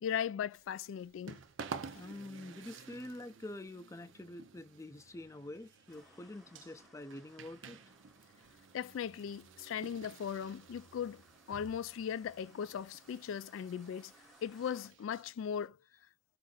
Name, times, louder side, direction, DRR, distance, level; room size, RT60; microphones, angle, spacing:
voice 1, 0.0-1.4 8.7-11.2 11.5-14.1 14.4-15.8, left 8 dB, 90° left, 0.3 m, -38 dB
sound 1, 0.5-15.7, right 5 dB, 80° right, 0.6 m, -52 dB
voice 2, 1.9-7.8, left 1 dB, 15° left, 0.4 m, -47 dB
sound 2, 5.9-14.9, equal, ahead, 0.8 m, -65 dB
5.0 x 2.5 x 3.8 m
head